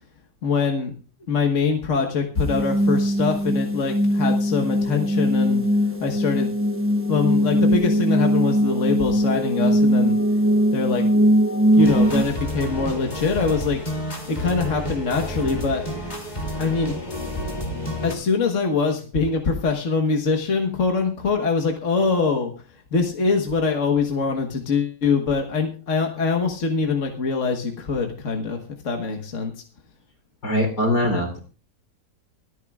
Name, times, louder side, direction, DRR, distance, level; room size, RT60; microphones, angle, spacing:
voice 1, 0.4-0.9 1.3-5.6 6.0-6.5 7.1-10.2 10.7-11.1 11.7-13.8 14.3-15.9 16.6-16.9 18.0-22.5 22.9-28.6 28.8-29.5, left 4 dB, 50° left, 3 dB, 1.6 m, -23 dB
sound 1, 2.4-12.2, equal, 10° right, 0.8 m, -20 dB
sound 2, 11.8-18.1, equal, 25° left, 2.9 m, -30 dB
voice 2, 30.4-31.4, left 1 dB, 70° left, 4 dB, 4.1 m, -22 dB
24.5 x 9.4 x 2.4 m, 0.35 s
omnidirectional pair, 1.8 m